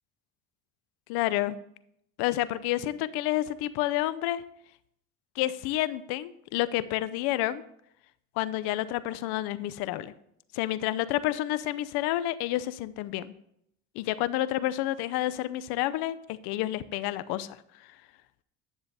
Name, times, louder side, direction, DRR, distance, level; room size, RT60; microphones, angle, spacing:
voice 1, 1.1-1.6 2.2-4.4 5.4-7.6 8.4-10.1 10.5-13.3 13.9-17.6, left 15 dB, 80° left, 16 dB, 0.7 m, -29 dB
10.5 x 6.9 x 4.2 m, 0.75 s
supercardioid pair, 90°, 38 cm